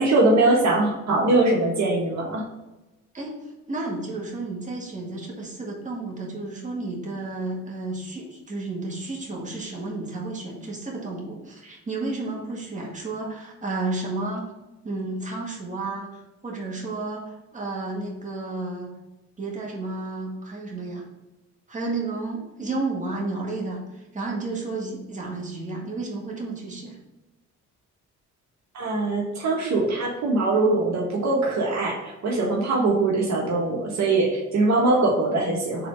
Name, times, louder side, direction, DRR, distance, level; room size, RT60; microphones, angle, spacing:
voice 1, 0.0-2.4 28.7-35.9, right 2 dB, 65° right, -1 dB, 1.5 m, -22 dB
voice 2, 3.1-14.5 14.8-18.9 19.4-21.1 21.7-27.0, right 2 dB, 25° right, -2 dB, 1.8 m, -32 dB
4.7 x 3.9 x 5.1 m, 1.0 s
cardioid pair, 90°, 30 cm